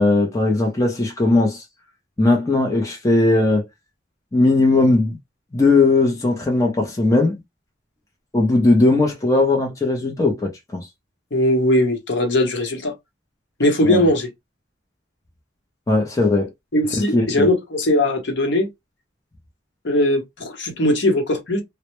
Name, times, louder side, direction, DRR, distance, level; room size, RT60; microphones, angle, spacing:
voice 1, 0.0-1.6 2.2-3.6 4.3-5.2 5.5-7.4 8.3-10.9 13.8-14.1 15.9-16.5 17.1-17.5, left 2 dB, 15° left, 0.5 m, -18 dB
voice 2, 11.3-12.9 13.6-14.3 16.7-18.7 19.8-21.6, left 1 dB, 65° left, 0.8 m, -19 dB
2.1 x 2.0 x 2.9 m
head